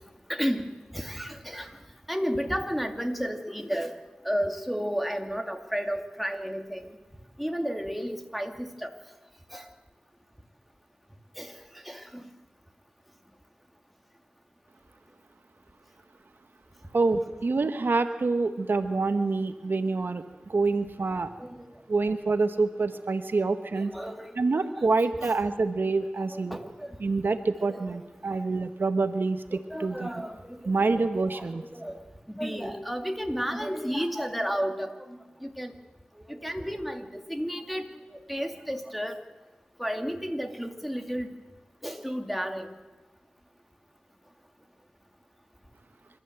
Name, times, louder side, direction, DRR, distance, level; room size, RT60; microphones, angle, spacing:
voice 1, 0.3-0.7 0.9-1.7 2.1-3.9 4.2-6.9 7.4-8.9 9.5-9.6 11.4-11.5 11.9-12.2 21.4-21.5 23.7-24.6 26.3-26.9 27.7-27.8 29.7-30.6 31.3-32.0 32.3-34.9 35.4-35.7 36.3-37.8 38.3-39.2 39.8-41.3 41.8-42.7, equal, ahead, 4 dB, 2.3 m, -32 dB
voice 2, 16.9-21.3 21.9-23.9 24.4-26.6 27.0-30.1 30.6-31.6, right 3 dB, 75° right, 9 dB, 1.1 m, -26 dB
27.0 x 13.0 x 7.9 m, 1.2 s
cardioid pair, 45°, 4 cm